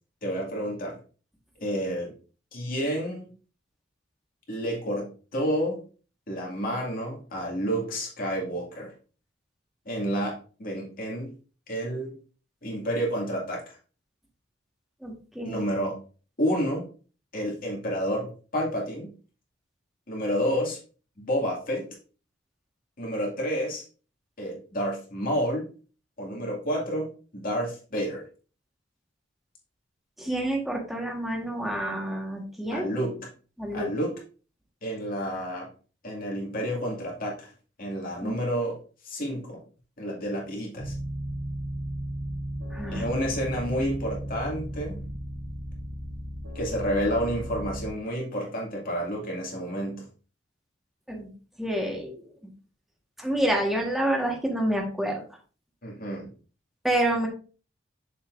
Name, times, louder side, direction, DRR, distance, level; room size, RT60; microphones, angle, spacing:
voice 1, 0.2-1.0 1.6-2.1 2.5-3.3 4.5-5.8 6.3-8.9 9.9-11.3 11.7-12.2 12.6-13.8 15.4-15.9 16.4-16.9 17.3-19.1 20.1-20.8 21.2-21.9 23.0-23.8 24.4-25.7 26.2-28.2 32.7-33.2 33.7-34.1 34.8-35.7 36.0-37.5 37.8-38.8 39.0-39.6 40.0-41.0 42.9-45.0 46.5-50.1 55.8-56.3, equal, 50° left, -1 dB, 2.2 m, -30 dB
voice 2, 15.0-15.6 30.2-32.9 33.6-33.9 38.2-38.4 42.7-43.0 51.1-51.3 51.6-52.2 53.2-55.2 56.8-57.3, right 1 dB, ahead, -1 dB, 1.5 m, -28 dB
sound 1, 40.8-47.9, right 1 dB, 75° right, 1.0 m, -35 dB
6.8 x 5.7 x 2.6 m, 0.37 s
head